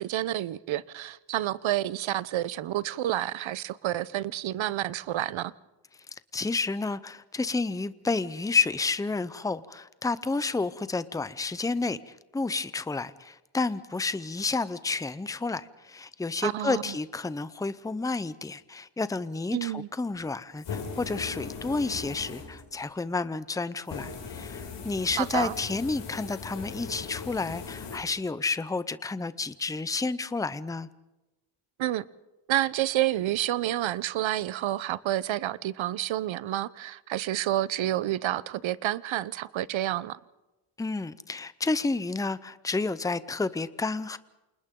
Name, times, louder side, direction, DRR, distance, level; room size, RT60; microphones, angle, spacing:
voice 1, 0.0-5.5 16.4-16.9 19.5-19.9 25.2-25.6 31.8-32.0 32.5-40.2, right 13 dB, 80° right, 0.9 m, -29 dB
voice 2, 6.3-30.9 40.8-44.2, left 3 dB, 10° left, 0.6 m, -30 dB
sound 1, 20.6-22.9 23.9-28.0, left 5 dB, 65° left, 6.3 m, -39 dB
29.5 x 27.5 x 3.8 m
cardioid pair, 130°, 46 cm